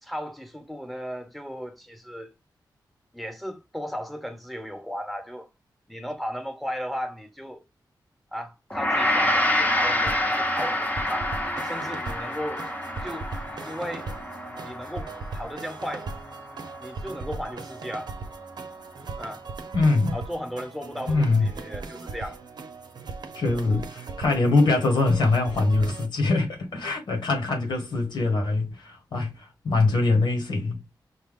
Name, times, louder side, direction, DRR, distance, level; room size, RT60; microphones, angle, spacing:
voice 1, 0.0-2.3 3.1-5.5 5.9-7.6 8.3-11.3 11.6-12.6 13.0-13.3 13.6-14.1 14.6-16.1 16.8-18.1 19.2-19.4 20.1-22.4 23.6-23.8, equal, ahead, 1.1 m, -35 dB
Gong, 8.7-18.1, left 1 dB, 20° left, 0.9 m, -28 dB
sound 1, 10.1-26.1, right 4 dB, 75° right, 0.8 m, -38 dB
voice 2, 19.7-20.1 21.1-21.5 23.3-30.8, left 3 dB, 85° left, 1.6 m, -23 dB
5.7 x 2.3 x 3.6 m
wide cardioid pair, 100°, 8 cm